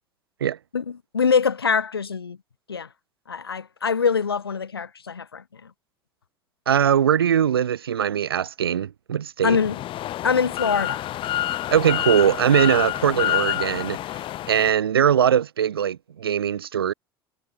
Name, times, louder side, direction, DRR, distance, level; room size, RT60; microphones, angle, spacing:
voice 1, 1.1-2.4 2.7-2.9 3.3-5.4 9.4-9.8 10.2-11.0, left 6 dB, 80° left, 1.4 m, -23 dB
voice 2, 6.7-9.6 11.7-14.2 14.5-16.9, right 9 dB, 75° right, 1.1 m, -21 dB
sound 1, 9.5-14.7, left 14 dB, 45° left, 1.3 m, -28 dB
figure-of-eight pair, 65°, 12 cm